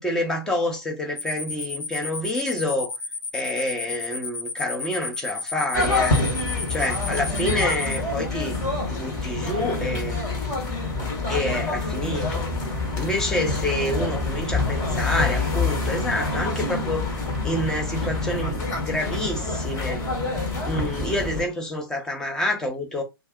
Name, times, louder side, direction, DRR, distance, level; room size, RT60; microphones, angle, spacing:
voice 1, 0.0-2.9 3.3-6.2 6.7-8.6 8.9-10.2 11.2-12.5 13.0-17.1 17.4-20.0 20.6-23.0, left 1 dB, 5° left, 0.7 m, -28 dB
sound 1, 1.2-8.0, left 4 dB, 70° left, 0.7 m, -32 dB
sound 2, 5.7-21.4, left 3 dB, 25° left, 1.0 m, -26 dB
2.5 x 2.3 x 3.5 m
figure-of-eight pair, 125°, 13 cm